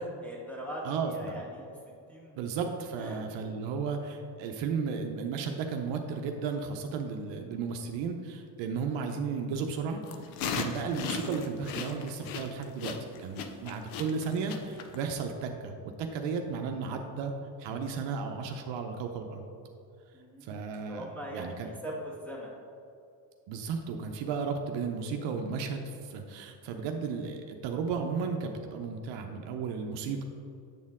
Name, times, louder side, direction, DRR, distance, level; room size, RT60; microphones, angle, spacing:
voice 1, 0.0-1.7 2.1-2.4 3.0-3.2 20.1-22.5, equal, 5° left, -4 dB, 1.6 m, -41 dB
voice 2, 0.8-1.4 2.4-10.0 10.4-17.3 17.6-19.5 20.4-21.7 23.5-30.2, right 5 dB, 70° right, 4 dB, 0.7 m, -34 dB
sound 1, 10.1-15.1, left 6 dB, 85° left, 0.7 m, -36 dB
8.2 x 4.4 x 3.6 m, 2.5 s
supercardioid pair, 95°, 47 cm